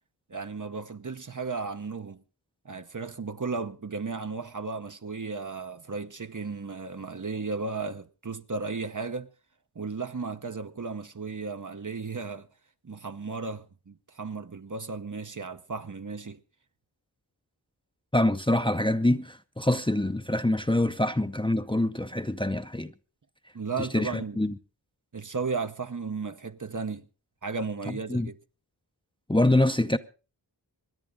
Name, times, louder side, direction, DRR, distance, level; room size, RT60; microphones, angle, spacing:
voice 1, 0.3-2.2 2.6-9.3 9.7-12.5 12.8-16.4 23.5-24.4 25.1-27.1 27.4-28.4, right 4 dB, 45° right, 0.8 m, -35 dB
voice 2, 18.1-22.9 23.9-24.5 27.9-28.3 29.3-30.0, left 1 dB, 10° left, 0.7 m, -25 dB
25.5 x 10.5 x 3.8 m
wide cardioid pair, 40°, 44 cm